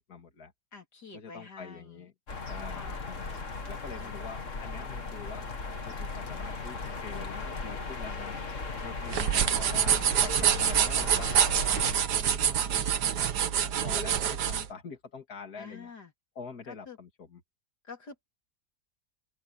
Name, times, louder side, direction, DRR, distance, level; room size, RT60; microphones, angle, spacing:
voice 1, 0.0-0.5 1.1-2.1 2.5-5.5 5.8-8.4 8.8-11.3 11.8-15.9 16.3-17.4, left 5 dB, 65° left, 2.9 m, -45 dB
voice 2, 0.7-2.1 2.7-3.1 4.0-4.1 9.1-9.4 15.6-16.1 16.7-17.0 17.8-18.3, left 5 dB, 85° left, 4.2 m, -47 dB
sound 1, 2.3-11.9, left 3 dB, 50° left, 2.5 m, -37 dB
sound 2, 9.0-14.7, right 8 dB, 85° right, 1.7 m, -26 dB
open air
omnidirectional pair, 1.7 m